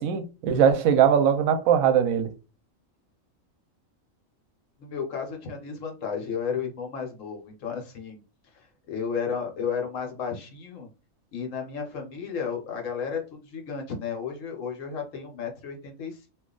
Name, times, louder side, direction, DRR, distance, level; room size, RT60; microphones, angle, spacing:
voice 1, 0.0-2.3, right 8 dB, 90° right, 1.0 m, -21 dB
voice 2, 4.8-8.2 8.5-10.9 11.3-16.3, left 6 dB, 70° left, 1.2 m, -33 dB
2.6 x 2.3 x 3.7 m
omnidirectional pair, 1.4 m